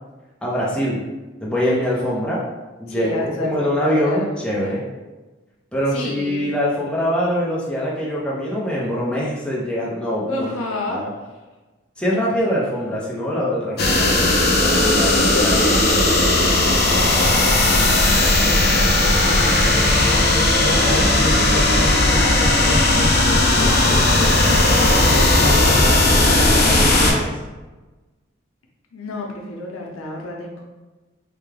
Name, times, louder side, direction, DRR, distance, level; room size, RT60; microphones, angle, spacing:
voice 1, 0.4-1.0 1.4-2.4 2.8-4.8 5.7-10.4 10.9-11.1 12.0-14.3 14.6-16.0 25.0-27.4, equal, 5° left, -6 dB, 0.6 m, -24 dB
voice 2, 2.9-4.8 5.9-6.5 10.3-11.4 14.5-16.0 16.7-18.7 20.6-22.4 23.3-23.9 25.2-26.2 28.9-30.6, left 2 dB, 90° left, -1 dB, 0.7 m, -31 dB
sound 1, 13.8-27.1, left 2 dB, 50° left, 0.6 m, -16 dB
3.4 x 2.2 x 3.3 m, 1.2 s
head